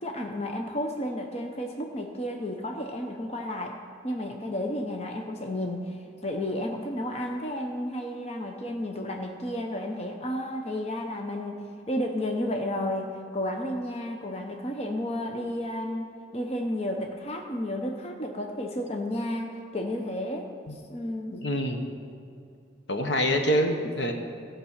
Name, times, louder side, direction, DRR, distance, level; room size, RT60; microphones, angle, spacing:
voice 1, 0.0-3.8 4.0-20.5 20.9-21.4 23.0-23.1, left 1 dB, 35° left, 2 dB, 0.8 m, -32 dB
voice 2, 21.3-21.8 22.9-24.1, equal, 75° left, 4 dB, 1.1 m, -26 dB
15.0 x 5.3 x 7.2 m, 2.5 s
head